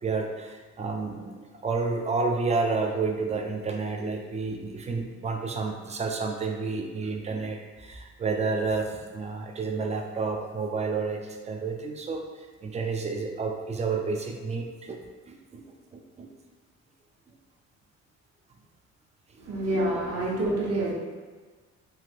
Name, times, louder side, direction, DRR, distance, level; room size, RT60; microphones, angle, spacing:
voice 1, 0.0-12.2 12.6-15.7 15.9-16.3 19.9-20.0, right 4 dB, 25° right, 3 dB, 0.4 m, -30 dB
voice 2, 19.4-20.9, right 1 dB, 55° right, -4 dB, 0.9 m, -27 dB
3.3 x 2.5 x 2.4 m, 1.4 s
cardioid pair, 90°, 30 cm